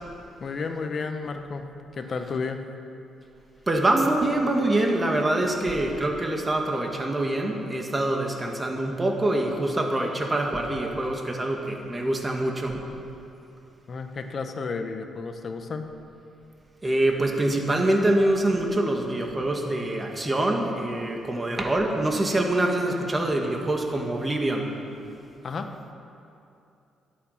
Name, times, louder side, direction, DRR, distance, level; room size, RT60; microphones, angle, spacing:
voice 1, 0.4-2.6 13.9-15.9 25.4-25.7, left 4 dB, 45° left, 6 dB, 1.2 m, -32 dB
voice 2, 3.7-12.8 16.8-24.7, right 1 dB, 20° right, 2 dB, 2.1 m, -25 dB
23.5 x 8.5 x 5.9 m, 2.7 s
cardioid pair, 90°, 0 cm